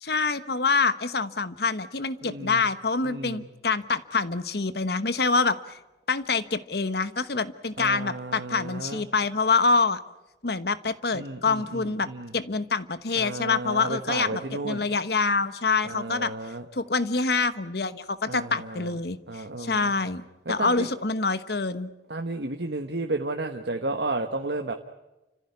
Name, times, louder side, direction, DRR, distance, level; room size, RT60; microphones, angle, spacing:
voice 1, 0.0-5.8 6.1-10.0 10.4-12.1 12.3-16.3 16.7-20.2 20.5-21.9, left 4 dB, 60° left, 13 dB, 1.2 m, -26 dB
voice 2, 2.2-2.6 3.0-3.4 7.8-9.0 11.1-12.3 13.1-14.8 15.8-16.6 18.3-18.9 19.3-19.9 20.4-20.9 22.1-24.7, right 2 dB, 70° right, 4 dB, 1.4 m, -33 dB
30.0 x 15.0 x 9.7 m, 1.0 s
head